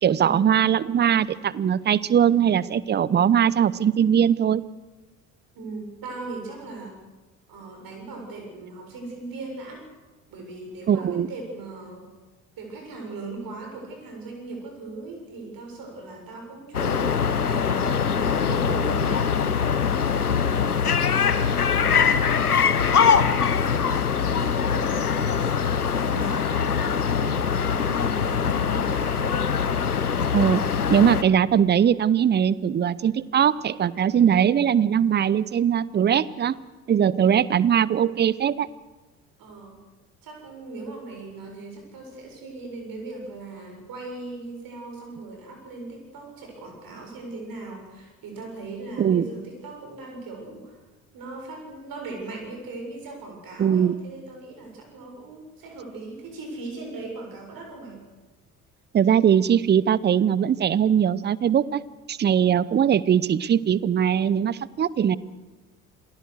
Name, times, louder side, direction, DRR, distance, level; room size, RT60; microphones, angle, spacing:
voice 1, 0.0-4.6 10.9-11.3 30.3-30.6 30.9-36.5 36.9-38.7 49.0-49.2 53.6-54.0 58.9-61.8 62.1-65.2, right 8 dB, 25° right, 20 dB, 0.7 m, -20 dB
voice 2, 5.5-7.0 7.5-9.9 10.3-12.1 12.6-21.0 21.3-29.6 39.4-39.8 40.2-50.8 51.1-58.0 62.7-62.8, right 3 dB, 50° right, 3 dB, 7.1 m, -39 dB
sound 1, 16.7-31.2, left 6 dB, 85° left, 0.9 m, -23 dB
27.5 x 19.0 x 6.6 m, 1.2 s
figure-of-eight pair, 55°, 44 cm